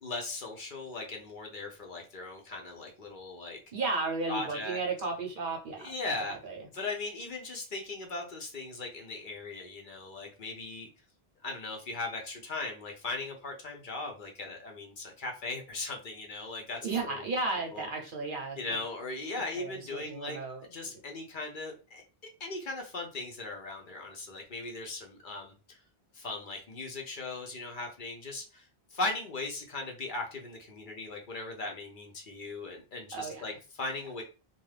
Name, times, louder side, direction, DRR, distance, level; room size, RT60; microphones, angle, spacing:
voice 1, 0.0-3.6 4.3-4.8 5.8-6.4 6.7-10.9 11.4-17.2 17.7-17.9 18.6-22.0 22.4-25.8 26.1-34.2, left 3 dB, 55° left, 2 dB, 0.8 m, -38 dB
voice 2, 3.7-5.9 6.2-6.6 16.8-18.8 19.5-20.7 33.1-33.5, right 3 dB, 55° right, 2 dB, 0.8 m, -34 dB
2.6 x 2.3 x 3.2 m, 0.32 s
omnidirectional pair, 1.1 m